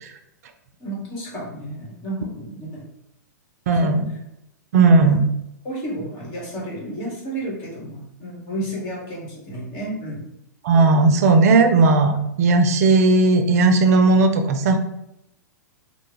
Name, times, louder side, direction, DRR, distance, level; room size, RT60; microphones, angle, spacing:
voice 1, 0.8-2.8 3.8-4.2 4.7-5.2 5.6-10.3, right 1 dB, 45° left, -4 dB, 1.5 m, -32 dB
voice 2, 3.7-4.0 4.7-5.2 10.6-14.8, right 3 dB, 55° right, 7 dB, 0.5 m, -16 dB
3.3 x 2.1 x 3.2 m, 0.82 s
figure-of-eight pair, 105°, 10 cm